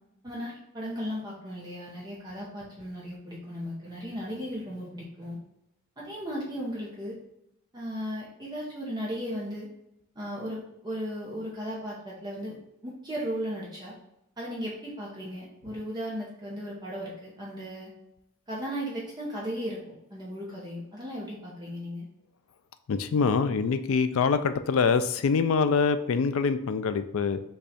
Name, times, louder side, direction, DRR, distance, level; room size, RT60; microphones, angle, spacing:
voice 1, 0.2-5.4 6.0-7.2 7.7-9.7 10.2-12.6 12.8-13.9 14.4-17.9 18.5-19.8 20.1-22.1, equal, 20° right, -5 dB, 0.8 m, -36 dB
voice 2, 22.9-27.4, left 5 dB, 70° left, 11 dB, 0.4 m, -25 dB
5.4 x 2.3 x 4.1 m, 0.81 s
head